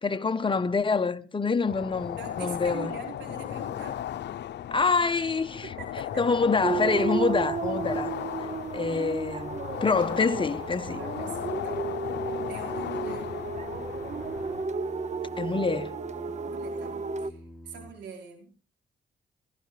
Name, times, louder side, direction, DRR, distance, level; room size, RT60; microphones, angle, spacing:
voice 1, 0.0-2.9 4.7-5.7 6.2-8.1 8.7-11.0 15.4-15.9, left 4 dB, 25° left, 1.1 m, -26 dB
sound 1, 1.7-14.6, left 11 dB, 70° left, 0.7 m, -36 dB
voice 2, 2.2-4.0 5.6-6.3 11.0-11.9 12.5-13.4 16.3-18.5, right 6 dB, 85° right, 4.6 m, -44 dB
sound 2, 6.6-17.3, right 5 dB, 40° right, 0.9 m, -33 dB
Singing, 10.0-17.9, equal, 5° right, 4.2 m, -48 dB
16.5 x 15.0 x 3.4 m
cardioid pair, 70°, 18 cm